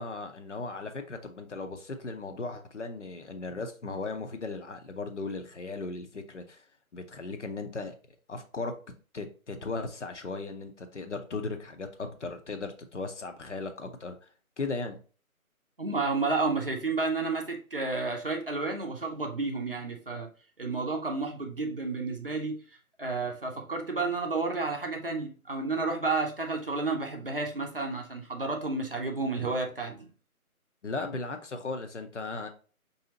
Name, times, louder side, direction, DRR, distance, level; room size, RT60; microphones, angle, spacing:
voice 1, 0.0-6.6 6.9-7.9 8.3-8.8 9.1-14.3 14.6-15.0 30.8-32.5, left 3 dB, 55° left, 0.7 m, -37 dB
voice 2, 15.8-20.3 20.6-22.6 23.0-30.1, right 3 dB, 40° right, 0.6 m, -31 dB
4.7 x 2.7 x 2.7 m
figure-of-eight pair, 160°, 44 cm